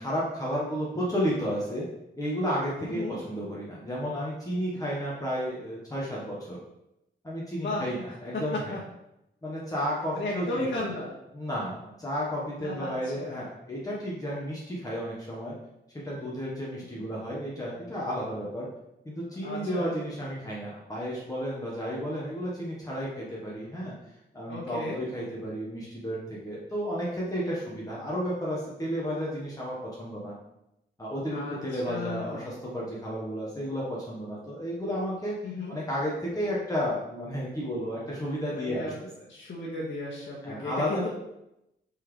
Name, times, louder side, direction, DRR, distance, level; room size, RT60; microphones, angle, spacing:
voice 1, 0.0-1.8 2.2-6.6 7.2-8.8 9.4-10.9 11.3-15.5 16.0-18.7 19.0-23.9 24.3-30.3 31.0-35.4 35.7-38.9 40.4-41.1, equal, 20° left, -6 dB, 1.1 m, -32 dB
voice 2, 2.9-3.2 7.5-7.9 8.3-8.8 10.1-11.1 12.6-13.4 16.8-16.9 19.4-19.9 24.5-25.0 31.3-32.5 35.4-35.7 38.5-38.9 39.3-41.1, left 2 dB, 60° left, -7 dB, 1.5 m, -35 dB
8.3 x 4.1 x 3.2 m, 0.87 s
wide cardioid pair, 160°, 20 cm